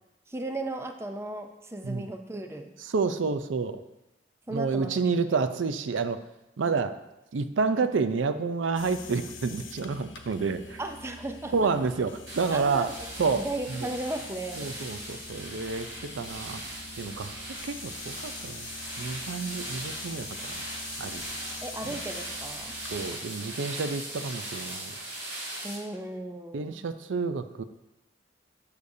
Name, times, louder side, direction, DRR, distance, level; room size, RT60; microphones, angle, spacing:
voice 1, 0.3-2.7 4.5-5.5 10.8-11.5 12.5-13.0 13.3-14.7 21.6-22.8 25.6-26.8, right 1 dB, 15° right, 5 dB, 0.5 m, -36 dB
voice 2, 2.8-3.8 4.5-6.2 6.6-7.0 7.3-10.8 11.5-12.9 13.2-13.9 14.6-16.6 17.0-17.3 17.6-18.7 19.0-20.5 21.0-21.2 21.9-22.0 22.9-24.9 26.5-27.6, right 4 dB, 85° right, 11 dB, 0.5 m, -29 dB
sound 1, 8.8-23.2, left 5 dB, 85° left, 0.9 m, -45 dB
sound 2, 12.3-25.8, right 1 dB, 60° right, 3.0 m, -39 dB
11.5 x 6.9 x 2.7 m, 0.95 s
head